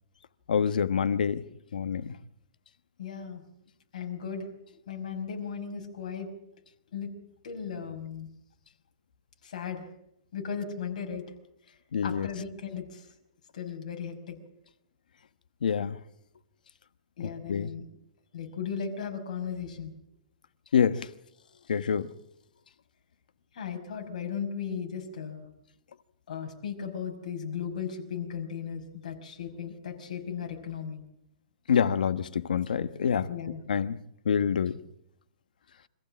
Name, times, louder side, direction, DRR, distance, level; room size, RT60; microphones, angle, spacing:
voice 1, 0.5-1.4 1.7-2.2 11.9-12.3 15.6-16.0 17.2-17.7 20.7-21.1 21.7-22.1 31.7-33.3 33.7-34.0 34.2-34.8, left 7 dB, 90° left, 1.2 m, -26 dB
voice 2, 3.0-3.4 3.9-4.5 4.9-6.3 6.9-7.1 7.4-8.3 9.4-9.8 10.3-11.3 12.0-13.1 13.5-14.4 17.2-17.8 18.3-19.9 23.5-25.5 26.3-31.0 33.3-33.6, left 7 dB, 60° left, 5.5 m, -36 dB
26.0 x 15.0 x 7.6 m
hypercardioid pair, 165°, 4 cm